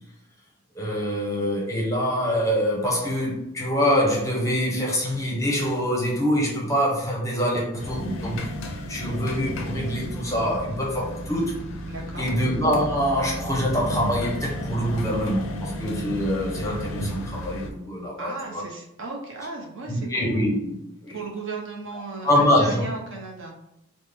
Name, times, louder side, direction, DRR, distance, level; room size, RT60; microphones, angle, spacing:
voice 1, 0.7-11.6 12.2-18.7 19.9-20.7 21.0-21.2 22.2-22.8, equal, 15° left, -2 dB, 0.6 m, -25 dB
sound 1, 7.8-17.7, left 1 dB, 65° left, 0.4 m, -33 dB
voice 2, 11.9-12.3 18.2-20.5 21.1-23.5, right 3 dB, 60° right, 0 dB, 0.7 m, -36 dB
3.5 x 2.1 x 3.3 m, 0.80 s
head